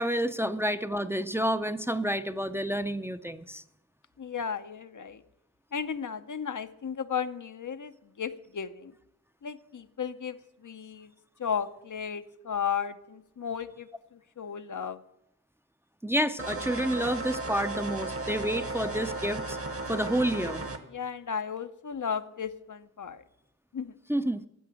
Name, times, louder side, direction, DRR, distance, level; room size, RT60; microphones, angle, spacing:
voice 1, 0.0-3.6 16.0-19.6 19.9-20.6 24.1-24.4, equal, 10° right, 10 dB, 0.5 m, -29 dB
voice 2, 4.2-5.2 5.7-8.9 9.4-10.4 10.6-11.1 11.4-15.0 20.9-23.2 23.7-23.9, left 7 dB, 70° left, 10 dB, 0.7 m, -34 dB
sound 1, 16.4-20.8, right 2 dB, 45° right, 1.4 m, -35 dB
15.0 x 5.9 x 8.6 m, 0.83 s
wide cardioid pair, 55°, 32 cm